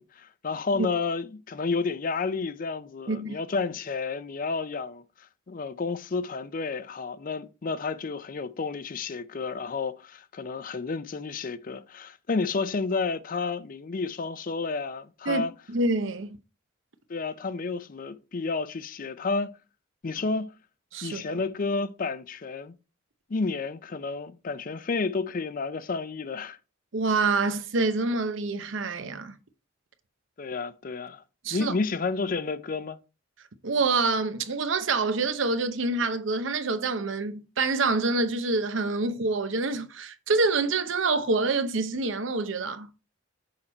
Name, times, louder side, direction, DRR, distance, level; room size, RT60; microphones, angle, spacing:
voice 1, 0.0-5.0 5.5-15.5 17.1-19.5 20.0-20.5 21.0-22.7 23.3-26.6 30.4-31.2 31.5-33.0, left 4 dB, 45° left, 0.5 m, -31 dB
voice 2, 3.1-3.4 15.3-16.4 20.9-21.4 26.9-29.4 31.4-31.8 33.6-42.9, right 3 dB, 70° right, 0.8 m, -26 dB
6.6 x 4.3 x 4.3 m
head